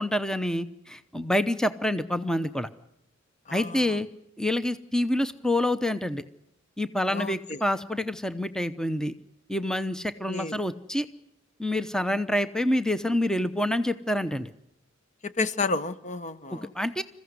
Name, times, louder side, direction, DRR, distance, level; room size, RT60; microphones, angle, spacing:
voice 1, 0.0-2.7 3.5-4.1 4.4-6.2 6.8-9.1 9.5-11.1 11.6-14.5 16.5-17.0, left 1 dB, 5° left, 0.8 m, -27 dB
voice 2, 3.5-3.9 7.1-7.6 10.3-10.6 15.2-16.7, left 3 dB, 35° left, 0.9 m, -31 dB
27.5 x 15.5 x 9.6 m
head